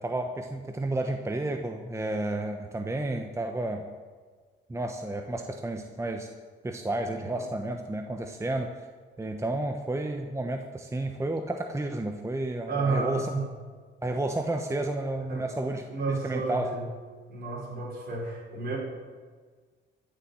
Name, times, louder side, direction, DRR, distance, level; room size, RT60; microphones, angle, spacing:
voice 1, 0.0-3.8 4.7-6.3 6.6-8.7 9.2-13.3 14.0-16.8, right 2 dB, 15° right, 5 dB, 1.1 m, -31 dB
voice 2, 12.7-13.4 15.3-15.5 15.9-16.9 17.3-18.8, right 3 dB, 55° right, -2 dB, 5.4 m, -31 dB
15.0 x 7.3 x 9.8 m, 1.5 s
cardioid pair, 90°, 20 cm